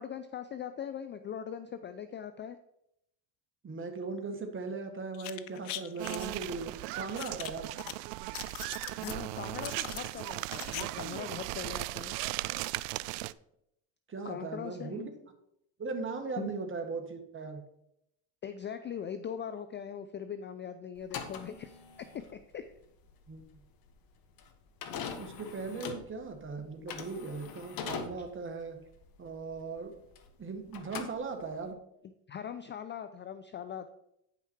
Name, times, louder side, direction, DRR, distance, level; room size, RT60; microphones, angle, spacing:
voice 1, 0.0-2.6 9.0-12.1 14.2-15.0 16.4-16.5 18.4-22.7 32.3-33.9, left 8 dB, 25° left, 11 dB, 0.4 m, -41 dB
voice 2, 3.6-7.7 14.1-15.1 15.8-17.6 23.3-23.4 24.9-28.8 29.2-29.9 30.4-31.8, right 4 dB, 25° right, 5 dB, 1.6 m, -38 dB
sound 1, 5.1-6.4 7.2-7.9 8.2-9.2 9.6-10.8 11.1-11.2, left 15 dB, 80° left, 0.8 m, -41 dB
sound 2, 6.0-13.3, right 18 dB, 65° right, 0.5 m, -37 dB
sound 3, 21.0-30.4 30.7-31.7, left 6 dB, 45° left, 1.4 m, -43 dB
9.3 x 5.9 x 4.6 m, 0.77 s
supercardioid pair, 105°, 49 cm